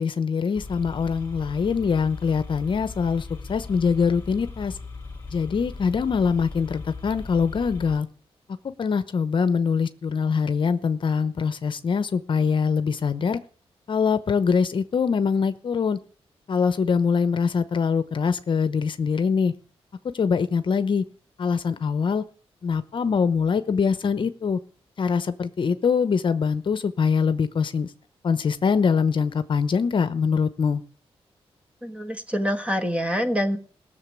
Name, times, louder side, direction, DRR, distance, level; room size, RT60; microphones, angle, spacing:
voice 1, 0.0-4.8 5.3-8.1 8.8-13.4 13.9-16.0 16.5-19.5 20.1-21.0 21.4-22.3 22.6-24.6 25.0-27.9 28.2-30.8, left 6 dB, 50° left, 12 dB, 0.8 m, -23 dB
sound 1, 0.5-8.0, left 3 dB, 20° left, 2.5 m, -38 dB
voice 2, 31.8-33.6, equal, 10° right, 8 dB, 1.5 m, -25 dB
17.5 x 6.9 x 8.4 m, 0.44 s
wide cardioid pair, 125°, 10 cm